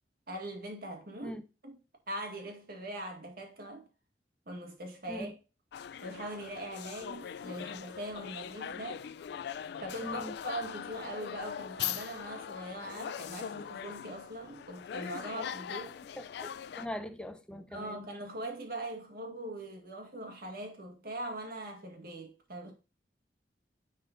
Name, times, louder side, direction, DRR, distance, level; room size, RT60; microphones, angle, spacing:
voice 1, 0.3-1.4 1.6-1.8 2.1-3.9 4.5-5.3 6.0-9.0 9.8-16.0 17.7-22.7, right 1 dB, 55° right, 1.8 m, -41 dB
sound 1, 5.7-16.9, left 8 dB, 65° left, 0.3 m, -41 dB
voice 2, 10.0-10.3 16.2-18.1, equal, 5° left, 0.6 m, -41 dB
9.9 x 4.2 x 2.6 m
head